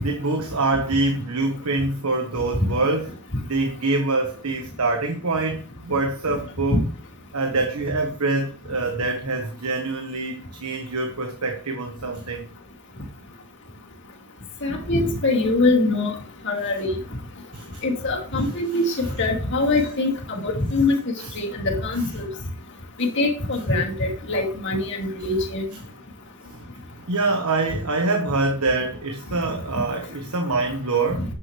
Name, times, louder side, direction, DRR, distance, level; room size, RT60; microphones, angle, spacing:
voice 1, 0.0-3.1 3.5-6.8 7.3-12.5 17.5-17.8 21.2-21.3 26.5-26.7 27.1-31.2, right 3 dB, 85° right, 1.4 m, -25 dB
voice 2, 14.6-16.1 16.4-17.0 17.8-21.0 21.3-22.3 23.0-25.6, left 2 dB, 55° left, 2.6 m, -23 dB
10.5 x 7.4 x 3.3 m
head